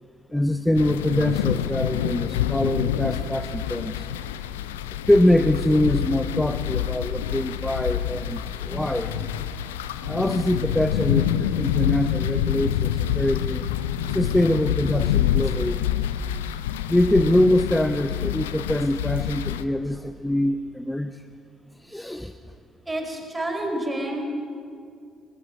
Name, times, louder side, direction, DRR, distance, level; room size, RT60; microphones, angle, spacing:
voice 1, 0.3-4.0 5.1-9.3 10.0-13.6 14.1-15.8 16.9-21.2 21.8-22.3, left 1 dB, 10° left, 8 dB, 0.9 m, -24 dB
sound 1, 0.8-19.6, left 10 dB, 75° left, 0.6 m, -27 dB
voice 2, 22.8-24.2, right 1 dB, 20° right, 3 dB, 4.8 m, -29 dB
21.5 x 20.5 x 6.5 m, 2.4 s
figure-of-eight pair, 45°, 0 cm